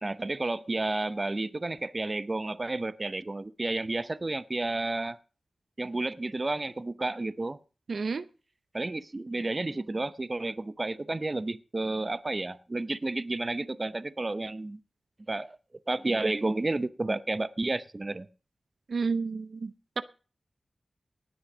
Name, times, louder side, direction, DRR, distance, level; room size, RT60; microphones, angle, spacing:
voice 1, 0.0-5.2 5.8-7.6 8.7-14.8 15.3-15.6 15.9-18.3, right 2 dB, 35° right, 0.8 m, -31 dB
voice 2, 7.9-8.3 18.9-20.0, right 4 dB, 75° right, 0.6 m, -31 dB
18.0 x 6.4 x 6.1 m
wide cardioid pair, 65°, 0 cm